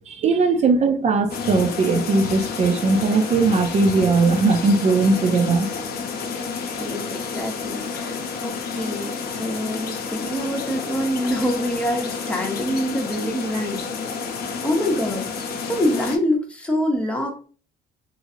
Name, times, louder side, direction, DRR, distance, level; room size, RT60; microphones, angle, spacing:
voice 1, 0.1-5.7, right 3 dB, 40° right, 0.5 m, -19 dB
sound 1, 1.3-16.2, left 5 dB, 65° left, 0.6 m, -30 dB
voice 2, 6.8-13.8 14.6-15.3 15.7-17.3, equal, 5° left, 0.9 m, -25 dB
3.0 x 2.6 x 2.7 m
cardioid pair, 110°, 17 cm